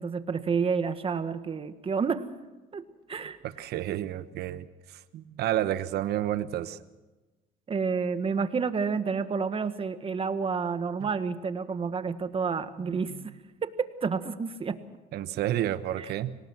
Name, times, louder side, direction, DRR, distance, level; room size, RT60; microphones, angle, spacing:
voice 1, 0.0-2.2 2.7-3.4 7.7-13.1 13.6-14.8 16.0-16.1, right 5 dB, 35° right, 10 dB, 1.5 m, -29 dB
voice 2, 3.4-6.8 12.8-13.2 15.1-16.3, right 12 dB, 70° right, 13 dB, 1.1 m, -31 dB
25.0 x 19.0 x 6.2 m, 1.2 s
cardioid pair, 110°, 17 cm